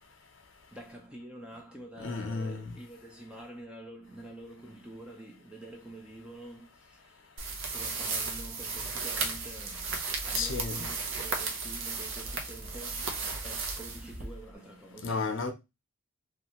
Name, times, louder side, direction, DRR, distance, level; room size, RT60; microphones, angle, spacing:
voice 1, 0.7-7.3 7.7-10.0 10.2-13.2 13.4-15.4, right 1 dB, 5° right, 0.5 m, -47 dB
voice 2, 2.0-2.7 10.3-10.8 15.0-15.5, left 4 dB, 60° left, 0.6 m, -32 dB
sound 1, 7.4-14.5, right 4 dB, 65° right, 0.7 m, -35 dB
3.3 x 2.4 x 2.9 m
head